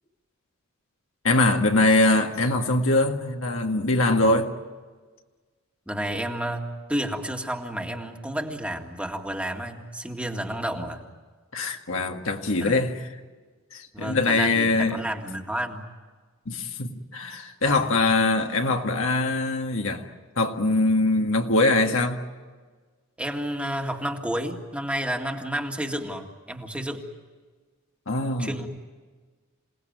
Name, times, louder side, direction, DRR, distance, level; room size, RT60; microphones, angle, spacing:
voice 1, 1.2-4.5 11.5-13.1 13.7-15.0 16.5-20.1 20.4-22.2 28.1-28.5, left 2 dB, 70° left, 1.9 m, -23 dB
voice 2, 5.9-11.1 12.5-13.0 13.9-15.9 17.6-18.0 23.2-27.0 28.4-28.7, right 1 dB, 5° right, 2.0 m, -31 dB
27.5 x 18.5 x 9.3 m
head